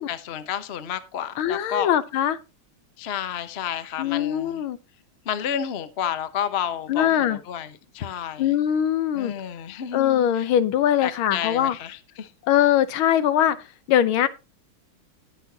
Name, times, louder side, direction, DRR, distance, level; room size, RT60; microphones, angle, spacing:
voice 1, 0.1-1.9 3.0-4.6 5.2-8.6 9.1-10.5 11.0-12.3, left 9 dB, 55° left, 0.7 m, -31 dB
voice 2, 1.4-2.4 4.0-4.8 6.9-7.4 8.4-9.3 9.9-11.7 12.5-13.6 13.9-14.3, left 10 dB, 75° left, 1.5 m, -21 dB
18.5 x 6.2 x 2.8 m
omnidirectional pair, 2.4 m